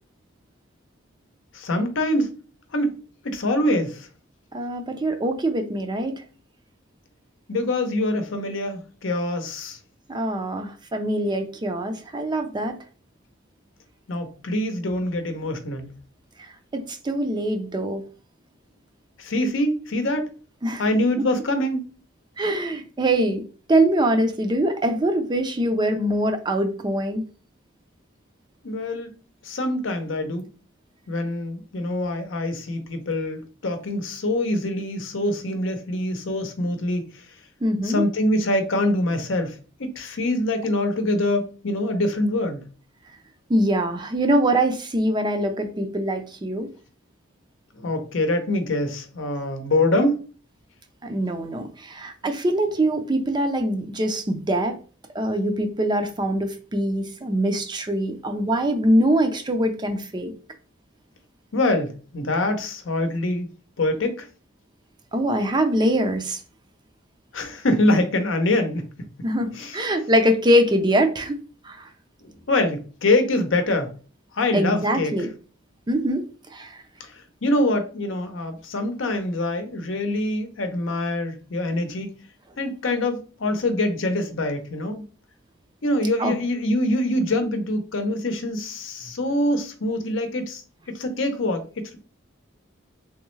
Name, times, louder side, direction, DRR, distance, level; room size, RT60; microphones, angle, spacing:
voice 1, 1.5-2.3 2.7-3.0 3.2-4.1 7.5-9.8 14.1-15.9 19.2-20.3 20.8-21.8 28.6-29.1 29.4-30.5 31.1-37.0 37.8-42.6 47.8-50.3 61.5-63.5 63.8-64.3 67.3-68.9 69.5-69.8 72.2-73.9 74.3-75.1 77.0-82.1 82.6-85.1 85.8-90.6 90.9-92.0, left 1 dB, 75° left, 0.7 m, -24 dB
voice 2, 4.5-6.2 10.1-12.8 16.4-16.5 16.7-18.0 20.6-20.8 22.4-23.4 23.7-27.2 37.6-38.0 43.5-46.7 51.0-54.8 55.1-60.3 65.1-66.4 69.2-71.9 74.5-75.3 75.9-76.3 76.5-76.8 86.2-86.3, right 1 dB, 25° right, 0.5 m, -23 dB
3.5 x 3.0 x 3.1 m
head